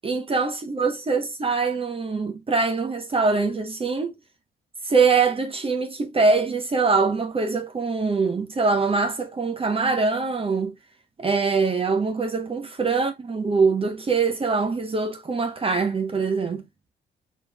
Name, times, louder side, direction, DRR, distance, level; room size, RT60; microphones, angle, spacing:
voice 1, 0.0-4.1 4.9-10.7 11.2-16.6, right 4 dB, 30° right, 0.8 m, -23 dB
4.5 x 3.6 x 2.2 m
cardioid pair, 90°, 20 cm